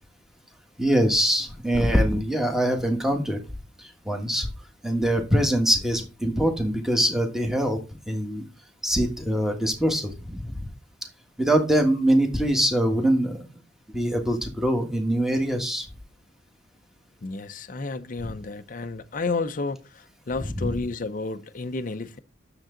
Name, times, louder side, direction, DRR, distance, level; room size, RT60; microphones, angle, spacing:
voice 1, 0.8-3.4 3.8-4.5 4.8-7.8 8.1-8.4 8.8-10.7 11.4-13.5 13.9-15.9 18.2-18.3 20.6-20.7, equal, ahead, 1.4 m, -23 dB
voice 2, 17.2-22.2, left 3 dB, 40° left, 0.6 m, -31 dB
9.0 x 6.9 x 3.8 m
head